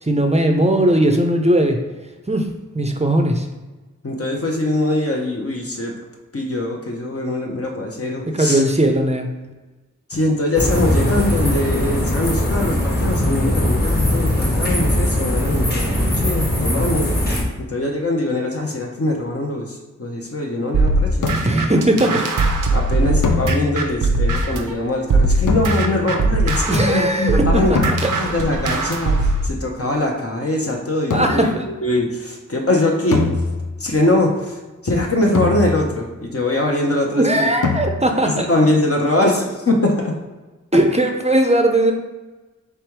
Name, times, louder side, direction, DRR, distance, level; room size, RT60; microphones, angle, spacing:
voice 1, 0.0-1.8 2.3-2.5 2.7-3.5 8.3-9.3 21.5-22.2 26.7-27.6 27.9-28.0 31.1-31.5 37.1-38.5 40.7-41.9, right 1 dB, 20° right, 4 dB, 0.5 m, -18 dB
voice 2, 4.0-6.0 6.3-8.6 10.1-17.1 17.7-22.0 22.7-33.2 33.8-37.5 38.2-40.1, left 1 dB, 50° left, 0 dB, 0.8 m, -22 dB
sound 1, 10.5-17.4, left 1 dB, 30° left, 1.2 m, -20 dB
sound 2, 20.7-24.7 25.1-29.5, right 2 dB, 90° right, 0.6 m, -20 dB
sound 3, 21.2-21.8 23.2-24.1 25.5-26.2 27.8-28.5 31.1-31.7 33.1-34.0 35.3-36.1 37.6-38.3, left 4 dB, 75° left, 0.6 m, -24 dB
3.5 x 3.3 x 4.6 m, 1.2 s
wide cardioid pair, 65°, 31 cm